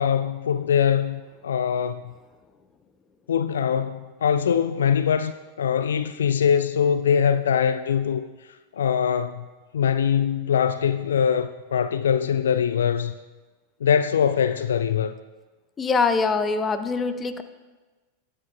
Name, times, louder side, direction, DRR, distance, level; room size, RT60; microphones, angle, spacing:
voice 1, 0.0-2.0 3.3-8.2 8.8-9.4 9.7-13.1 13.8-15.1, left 8 dB, 65° left, 0.3 m, -22 dB
voice 2, 15.8-17.4, left 4 dB, 20° left, 0.7 m, -23 dB
20.0 x 8.1 x 2.4 m
figure-of-eight pair, 90°, 0 cm